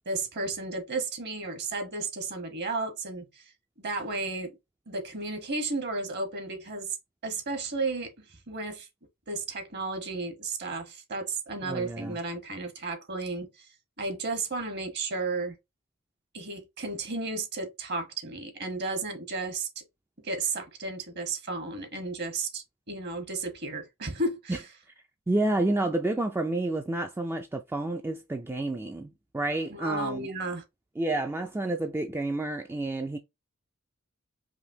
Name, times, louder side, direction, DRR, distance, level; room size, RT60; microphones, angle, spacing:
voice 1, 0.0-3.4 3.8-4.6 4.9-7.0 7.2-8.9 9.3-13.7 14.0-15.5 16.3-19.7 20.2-24.6 29.7-30.6, right 3 dB, 50° right, 1.1 m, -33 dB
voice 2, 11.6-12.2 24.5-24.6 25.3-30.3 31.0-33.2, right 2 dB, 10° right, 0.3 m, -29 dB
5.0 x 2.8 x 2.7 m
head